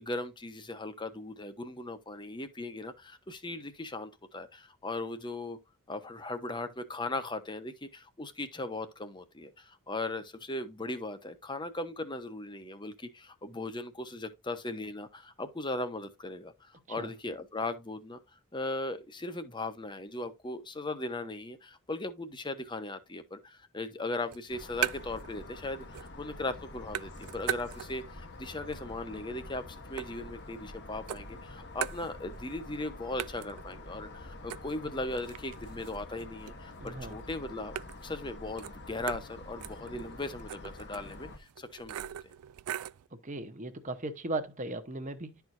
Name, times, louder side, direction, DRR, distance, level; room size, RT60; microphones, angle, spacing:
voice 1, 0.0-5.6 5.9-18.2 18.5-37.8 38.0-42.1, left 2 dB, 20° left, 0.9 m, -38 dB
sound 1, 24.2-25.3 25.6-26.3 26.6-28.2 28.6-30.7 31.1-32.5 32.8-32.9 33.2-43.1, right 11 dB, 75° right, 0.3 m, -41 dB
sound 2, 24.5-41.4, left 2 dB, 50° left, 1.2 m, -47 dB
voice 2, 36.8-37.2 43.2-45.4, right 2 dB, 35° right, 1.0 m, -37 dB
12.0 x 4.6 x 2.7 m
head